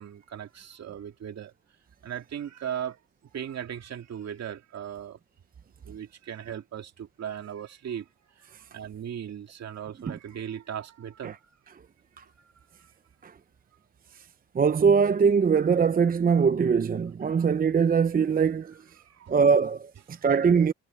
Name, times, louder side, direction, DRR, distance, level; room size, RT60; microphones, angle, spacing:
voice 1, 0.0-1.5 2.0-3.0 3.3-5.2 5.8-8.1 8.4-11.5 12.1-12.5 17.3-17.4 19.0-19.4, right 9 dB, 60° right, 2.5 m, -38 dB
voice 2, 14.5-18.7 19.3-20.7, right 6 dB, 30° right, 0.6 m, -22 dB
cardioid pair, 90°, 30 cm